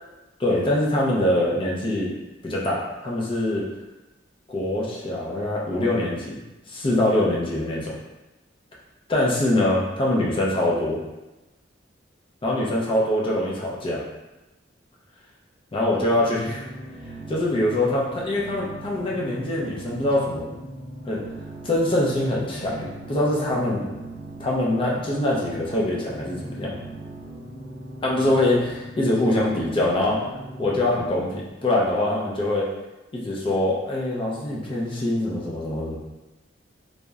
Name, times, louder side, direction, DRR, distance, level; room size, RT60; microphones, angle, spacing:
voice 1, 0.4-2.1 2.4-3.7 4.5-6.4 6.7-7.9 9.1-11.0 12.4-14.0 15.7-16.6 17.3-20.5 21.0-21.2 21.6-23.9 24.4-26.8 28.0-30.2 30.6-32.7 33.1-36.0, left 1 dB, 30° left, -4 dB, 0.4 m, -24 dB
sound 1, 16.2-31.3, right 1 dB, 35° right, 0.6 m, -39 dB
2.8 x 2.0 x 2.3 m, 1.1 s
head